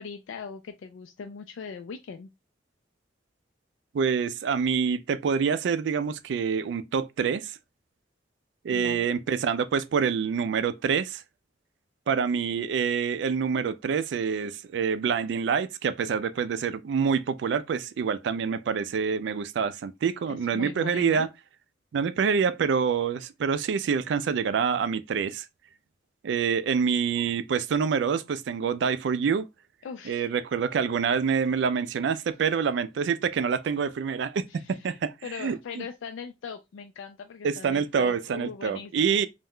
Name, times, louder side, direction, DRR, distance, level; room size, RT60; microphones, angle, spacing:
voice 1, 0.0-2.3 8.7-9.1 20.3-21.3 29.8-30.3 34.5-39.3, left 6 dB, 90° left, 0.3 m, -40 dB
voice 2, 3.9-7.6 8.6-11.2 12.1-21.3 21.9-25.5 26.2-29.5 30.1-35.1 35.4-35.8 37.4-39.3, right 6 dB, 70° right, 0.3 m, -26 dB
2.4 x 2.2 x 3.4 m
head